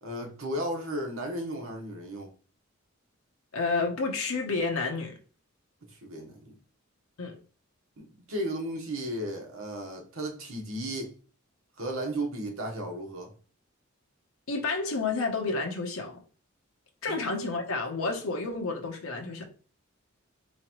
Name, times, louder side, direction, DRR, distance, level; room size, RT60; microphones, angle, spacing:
voice 1, 0.0-2.3 5.9-6.6 8.0-11.1 11.8-13.3 17.1-17.2, right 1 dB, 85° right, 1.1 m, -34 dB
voice 2, 3.5-5.2 7.2-7.4 14.5-16.2 17.0-19.4, left 3 dB, 85° left, 0.9 m, -30 dB
3.9 x 3.2 x 3.0 m
head